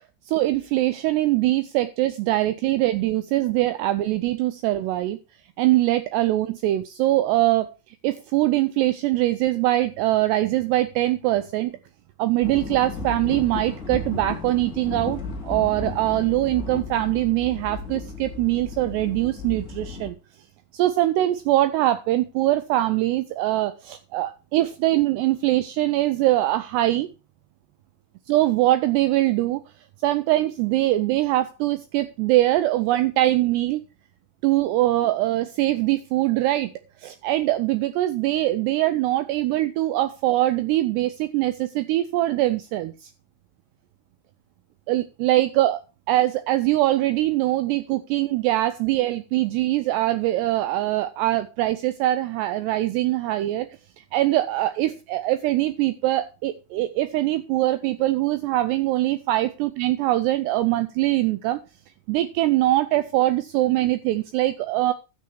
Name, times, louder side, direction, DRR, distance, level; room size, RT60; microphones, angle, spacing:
voice 1, 0.3-5.2 5.6-7.7 8.0-11.7 12.2-20.2 20.7-27.1 28.3-29.6 30.0-33.8 34.4-36.7 37.0-43.1 44.9-45.8 46.1-53.7 54.0-61.6 62.1-64.9, right 15 dB, 85° right, 2.4 m, -22 dB
sound 1, 12.4-20.1, left 3 dB, 40° left, 1.2 m, -34 dB
12.5 x 7.0 x 4.6 m
omnidirectional pair, 5.5 m